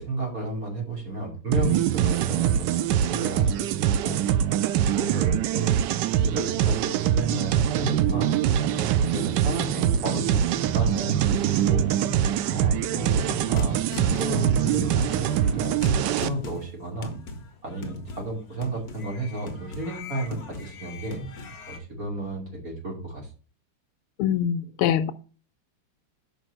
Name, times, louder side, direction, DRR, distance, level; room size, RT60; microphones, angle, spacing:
voice 1, 0.0-2.8 3.1-3.7 4.0-4.2 5.0-5.8 6.3-8.4 8.7-11.8 12.5-17.1 17.6-21.2 21.7-23.3, right 2 dB, 40° right, 0 dB, 3.1 m, -33 dB
sound 1, 1.5-16.3, right 10 dB, 90° right, 0.9 m, -23 dB
sound 2, 8.1-16.4, right 3 dB, 65° right, 2.4 m, -37 dB
sound 3, 13.0-21.8, left 2 dB, 50° left, 1.4 m, -38 dB
voice 2, 24.2-25.1, left 9 dB, 80° left, 12 dB, 1.5 m, -24 dB
6.3 x 5.2 x 6.5 m, 0.38 s
omnidirectional pair, 2.4 m